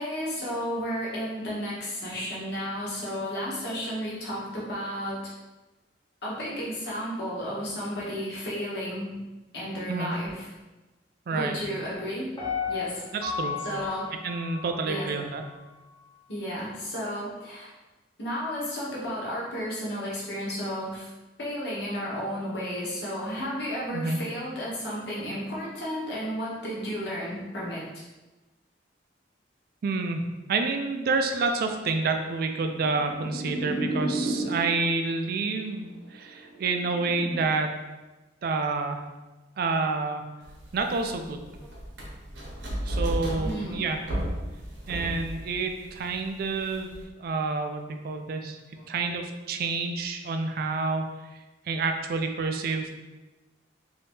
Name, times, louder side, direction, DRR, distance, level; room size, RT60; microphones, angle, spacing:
voice 1, 0.0-5.2 6.2-9.1 9.5-10.5 11.3-12.3 12.7-13.0 13.6-14.1 14.9-15.1 16.3-17.7 18.2-21.1 21.4-28.0 43.4-43.8 48.8-48.9, equal, 65° left, -6 dB, 1.1 m, -33 dB
voice 2, 11.3-11.6 13.1-13.6 14.2-15.4 23.9-24.2 29.8-30.2 30.5-37.8 38.4-39.0 39.6-40.3 40.7-41.5 42.8-44.0 44.9-46.9 47.2-48.6 48.9-51.1 51.7-52.9, right 3 dB, 55° right, 5 dB, 0.3 m, -28 dB
Piano, 12.4-15.4 15.9-16.0, left 5 dB, 25° left, 0.9 m, -34 dB
sound 1, 32.0-35.0 35.9-37.4, right 1 dB, 90° left, 0.9 m, -33 dB
sound 2, 40.4-47.0, equal, 85° right, 0.8 m, -34 dB
2.7 x 2.6 x 3.5 m, 1.1 s
head